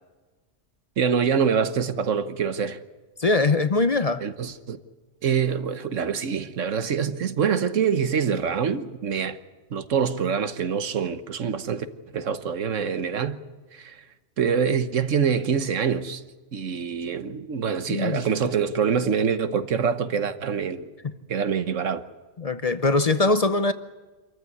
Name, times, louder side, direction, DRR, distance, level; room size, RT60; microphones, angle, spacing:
voice 1, 1.0-2.8 4.2-4.8 5.2-9.4 9.7-11.9 12.1-13.4 13.7-14.0 14.4-16.2 16.5-20.9 21.3-22.0, right 7 dB, 85° right, 1.5 m, -25 dB
voice 2, 3.2-4.2 17.9-18.2 22.4-23.7, left 3 dB, 35° left, 0.7 m, -22 dB
26.0 x 14.5 x 9.6 m
omnidirectional pair, 1.3 m